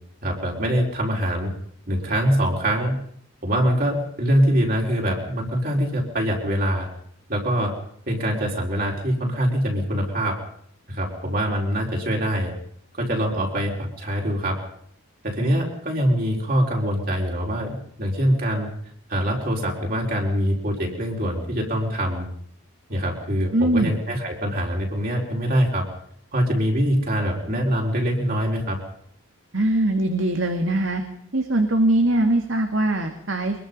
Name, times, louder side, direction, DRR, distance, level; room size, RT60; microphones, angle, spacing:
voice 1, 0.2-1.5 1.9-3.0 3.4-6.9 7.3-7.7 8.1-10.4 10.9-12.5 13.0-14.6 15.2-18.7 19.1-22.3 22.9-25.9 26.3-28.8, equal, 45° right, -1 dB, 4.7 m, -24 dB
voice 2, 23.5-23.9 29.5-31.0 31.3-33.6, right 1 dB, 65° right, 5 dB, 2.2 m, -21 dB
23.5 x 22.0 x 5.5 m, 0.66 s
head